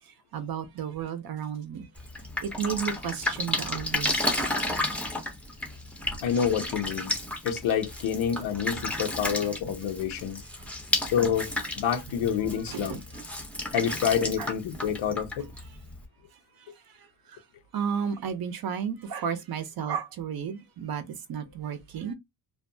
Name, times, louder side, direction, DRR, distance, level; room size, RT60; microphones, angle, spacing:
voice 1, 0.3-1.9 2.4-4.1 10.6-10.7 12.7-13.0 14.4-14.5 17.3-17.4 17.7-22.1, right 7 dB, 50° right, 0.6 m, -33 dB
Drip, 2.0-16.0, left 1 dB, 5° left, 0.5 m, -32 dB
voice 2, 6.2-7.1 7.4-10.4 11.0-13.0 13.7-15.5, left 8 dB, 90° left, 0.7 m, -28 dB
2.5 x 2.2 x 2.6 m
cardioid pair, 130°, 46 cm